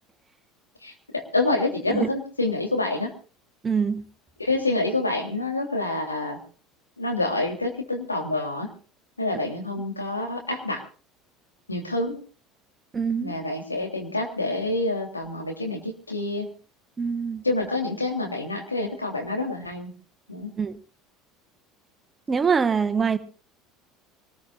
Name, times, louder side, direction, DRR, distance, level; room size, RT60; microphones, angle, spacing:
voice 1, 0.8-3.1 4.4-6.4 7.0-8.7 9.2-10.8 11.7-12.2 13.2-16.5 17.4-19.9 20.3-20.5, left 2 dB, 90° left, 3 dB, 3.1 m, -27 dB
voice 2, 3.6-4.0 12.9-13.4 17.0-17.4 20.6-20.8 22.3-23.2, right 6 dB, 25° right, 10 dB, 1.3 m, -24 dB
24.5 x 19.5 x 2.4 m, 0.38 s
figure-of-eight pair, 70°, 0 cm